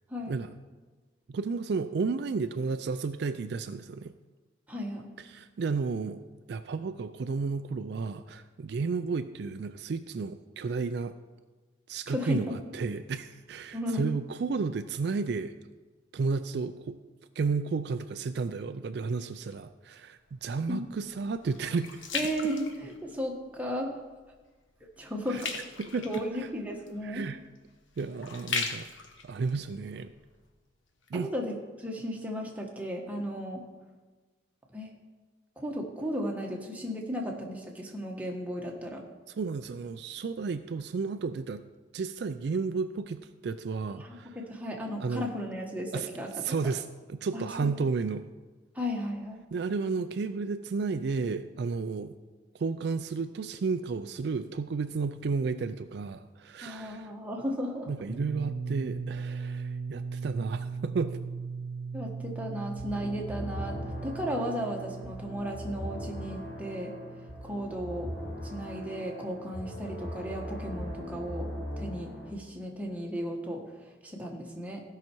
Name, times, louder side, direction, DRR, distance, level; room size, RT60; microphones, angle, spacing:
voice 1, 1.3-4.1 5.2-6.2 6.5-11.2 11.9-15.5 16.1-17.0 17.4-22.1 25.3-26.5 27.0-27.4 28.0-28.9 29.2-30.1 31.1-31.3 39.3-41.6 41.9-44.4 45.0-45.3 45.9-46.1 46.3-48.3 49.5-52.1 52.5-57.1 57.9-61.2, right 4 dB, 60° right, 10 dB, 0.4 m, -32 dB
voice 2, 4.7-5.1 12.1-12.5 13.7-14.1 20.7-20.8 22.1-24.0 25.0-25.6 26.0-27.2 31.1-33.6 34.7-34.9 35.6-39.0 44.0-46.3 47.3-47.8 48.7-49.4 56.6-57.9 61.9-66.9 67.4-68.1 68.4-71.5 71.8-73.6 74.0-74.8, equal, 10° right, 0 dB, 1.4 m, -35 dB
sound 1, 20.2-23.5 23.9-24.3 24.6-30.5 31.0-31.1, left 5 dB, 85° left, 1.2 m, -38 dB
sound 2, 58.1-69.8, right 5 dB, 35° left, 2.1 m, -39 dB
sound 3, 62.8-72.3, equal, 10° left, 3.6 m, -40 dB
15.5 x 5.8 x 4.5 m, 1.3 s
head